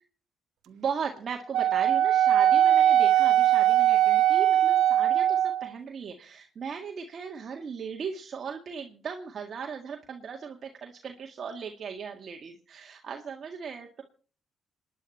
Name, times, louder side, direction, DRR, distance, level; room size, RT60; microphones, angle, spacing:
voice 1, 0.7-14.0, right 6 dB, 50° right, 2 dB, 1.8 m, -37 dB
Wind instrument woodwind instrument, 1.5-5.7, right 11 dB, 85° right, 0.9 m, -21 dB
27.0 x 10.5 x 4.3 m, 0.42 s
cardioid pair, 90°, 0 cm